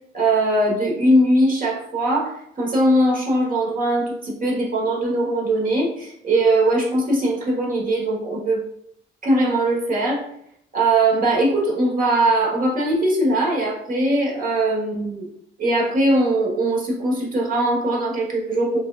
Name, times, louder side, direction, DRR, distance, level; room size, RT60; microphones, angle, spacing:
voice 1, 0.1-8.6 9.2-10.2 10.7-15.3 15.6-18.8, right 1 dB, 45° right, -3 dB, 1.3 m, -20 dB
4.7 x 2.4 x 2.3 m, 0.73 s
cardioid pair, 90°, 20 cm